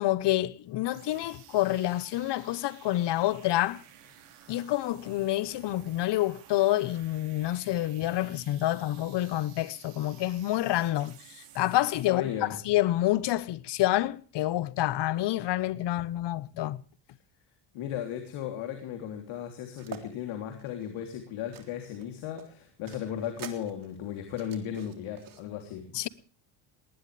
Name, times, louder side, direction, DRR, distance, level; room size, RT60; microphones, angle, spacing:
voice 1, 0.0-3.8 4.5-16.8 25.9-26.1, left 15 dB, 55° left, 1.1 m, -28 dB
sound 1, 0.8-12.1, right 10 dB, 90° right, 4.5 m, -54 dB
voice 2, 12.1-12.5 17.7-25.8, left 9 dB, 70° left, 3.4 m, -36 dB
sound 2, 19.8-20.0 20.5-22.0 22.4-25.4, right 7 dB, 40° right, 3.5 m, -46 dB
20.0 x 19.0 x 3.4 m
supercardioid pair, 100°, 48 cm